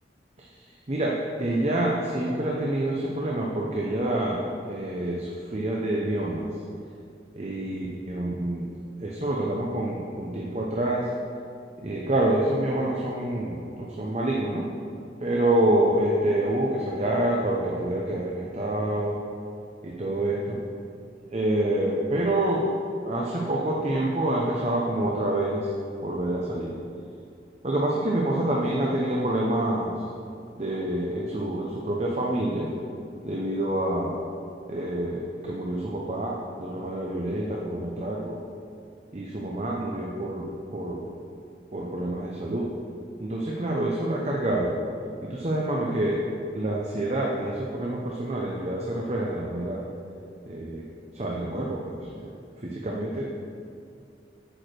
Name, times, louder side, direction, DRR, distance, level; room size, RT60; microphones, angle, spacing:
voice 1, 0.9-4.4 4.7-6.5 7.4-8.6 9.0-11.1 11.8-14.7 15.2-19.2 19.8-20.6 21.3-22.6 23.1-25.7 26.0-26.7 27.6-29.9 30.5-32.7 33.2-34.2 34.7-38.4 39.1-41.1 41.7-42.7 43.2-44.8 45.2-46.2 46.5-49.8 50.5-50.9 51.1-52.0 52.6-53.3, right 1 dB, 35° right, -2 dB, 0.8 m, -27 dB
8.7 x 4.8 x 6.5 m, 2.5 s
head